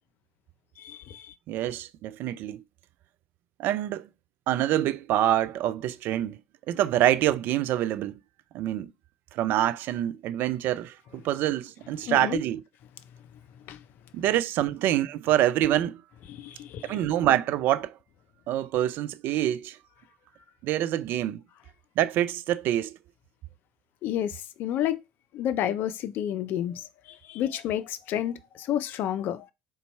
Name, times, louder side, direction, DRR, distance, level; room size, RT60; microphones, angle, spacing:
voice 1, 0.8-1.3 12.0-12.4 13.7-13.8 16.3-17.0 24.0-25.0 25.3-29.5, left 11 dB, 55° left, 0.5 m, -30 dB
voice 2, 1.5-2.6 3.6-4.1 4.5-6.4 6.7-8.2 8.5-8.9 9.3-12.6 14.1-16.0 16.9-18.0 18.5-19.8 20.6-21.4 22.0-23.0, right 12 dB, 60° right, 0.3 m, -26 dB
4.0 x 2.2 x 4.3 m
hypercardioid pair, 60°, 4 cm